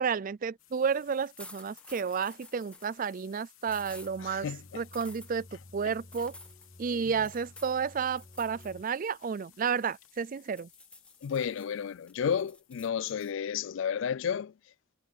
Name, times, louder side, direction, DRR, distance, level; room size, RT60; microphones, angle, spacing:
voice 1, 0.0-4.5 4.7-5.5 5.7-6.3 6.8-10.7, right 6 dB, 40° right, 0.4 m, -31 dB
sound 1, 0.6-12.8, left 14 dB, 80° left, 3.1 m, -60 dB
sound 2, 1.4-2.9 3.7-4.1 4.9-5.3 6.1-6.7 7.2-7.8 8.2-8.7 9.1-10.2 10.6-11.6 12.1-13.3, left 2 dB, 5° left, 1.5 m, -51 dB
sound 3, 3.7-8.8, left 1 dB, 25° left, 1.2 m, -53 dB
voice 2, 4.2-4.8 6.9-7.0 11.2-14.5, left 7 dB, 65° left, 0.3 m, -32 dB
head